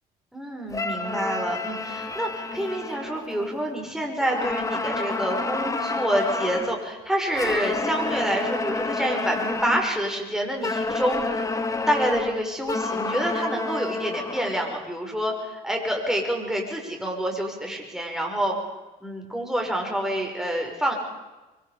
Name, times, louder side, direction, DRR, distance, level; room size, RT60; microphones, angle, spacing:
voice 1, 0.3-11.5 11.9-18.5 19.0-20.9, right 1 dB, 5° right, 1 dB, 5.6 m, -27 dB
sound 1, 0.7-3.8 4.2-6.8 7.3-10.0 10.6-14.8, left 3 dB, 20° left, 1.8 m, -29 dB
24.5 x 24.0 x 5.1 m, 1.1 s
cardioid pair, 110°, 17 cm